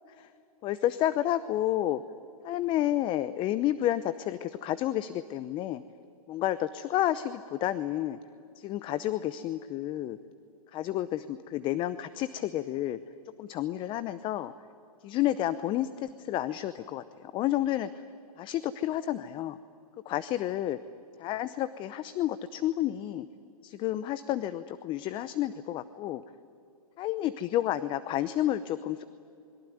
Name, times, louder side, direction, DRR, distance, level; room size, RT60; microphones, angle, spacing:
voice 1, 0.6-2.0 2.4-5.8 6.3-8.2 8.6-10.2 10.7-13.0 13.4-14.5 15.0-18.0 18.4-19.6 20.1-20.8 21.2-23.3 23.6-26.2 27.0-29.0, left 13 dB, 25° left, 14 dB, 0.7 m, -30 dB
27.0 x 22.0 x 9.4 m, 2.6 s
hypercardioid pair, 125°, 19 cm